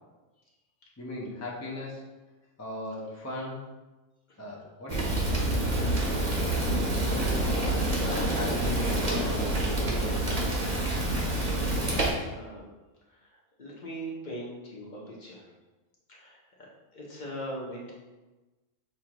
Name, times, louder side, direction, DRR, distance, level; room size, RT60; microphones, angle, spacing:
voice 1, 1.0-2.0 2.6-3.6 4.4-6.3 7.1-10.5, left 1 dB, 20° left, -4 dB, 0.5 m, -38 dB
Fire, 4.9-12.1, right 1 dB, 35° right, 0.8 m, -27 dB
voice 2, 12.3-12.6 13.1-13.3 13.6-15.5 16.1-17.9, equal, 40° left, -4 dB, 1.0 m, -41 dB
6.6 x 2.4 x 2.9 m, 1.2 s
omnidirectional pair, 1.3 m